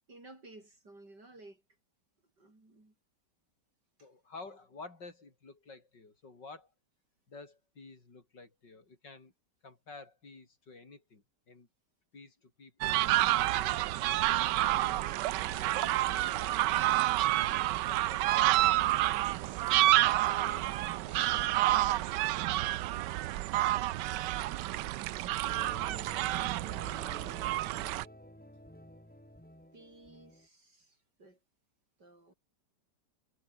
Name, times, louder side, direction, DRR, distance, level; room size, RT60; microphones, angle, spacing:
voice 1, 0.1-1.6 2.2-2.9 4.0-4.1 24.9-26.1 29.7-31.4 32.0-32.3, right 2 dB, 75° right, 8.1 m, -56 dB
voice 2, 4.0-6.7 7.3-9.3 9.6-11.7 12.1-13.9 14.6-16.6 17.9-19.0 19.8-22.4, left 3 dB, 90° left, 5.0 m, -51 dB
sound 1, 12.8-28.0, right 16 dB, 90° right, 1.2 m, -29 dB
sound 2, 25.4-30.5, equal, 5° left, 3.4 m, -51 dB
omnidirectional pair, 1.9 m